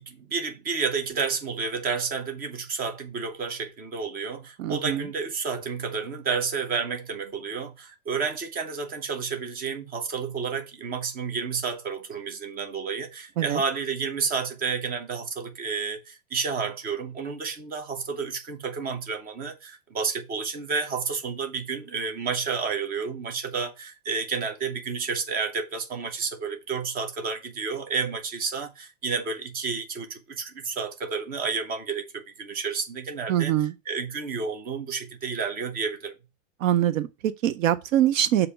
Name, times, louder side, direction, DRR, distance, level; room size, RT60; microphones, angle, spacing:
voice 1, 0.0-33.5 33.9-36.1, right 5 dB, 20° right, 0.8 m, -30 dB
voice 2, 4.6-5.0 13.4-13.6 33.3-33.7 36.6-38.5, right 11 dB, 70° right, 0.6 m, -23 dB
6.8 x 2.8 x 5.5 m
supercardioid pair, 150°, 42 cm